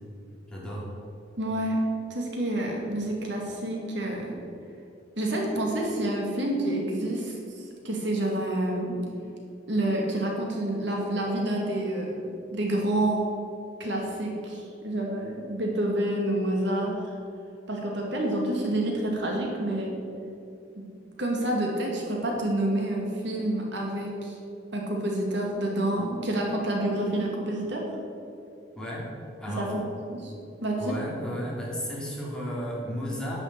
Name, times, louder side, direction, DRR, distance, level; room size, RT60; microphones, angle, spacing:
voice 1, 0.5-0.8 28.8-29.1 29.4-29.7 30.8-33.4, equal, 5° left, -5 dB, 3.3 m, -33 dB
voice 2, 1.4-1.8 2.1-4.3 5.2-9.0 9.7-12.2 12.5-13.2 13.8-17.0 17.7-19.9 20.7-20.8 21.2-24.4 24.7-27.8 29.6-29.8 30.1-30.3 30.6-31.0, right 1 dB, 65° right, -1 dB, 2.5 m, -28 dB
11.0 x 7.3 x 8.4 m, 2.7 s
head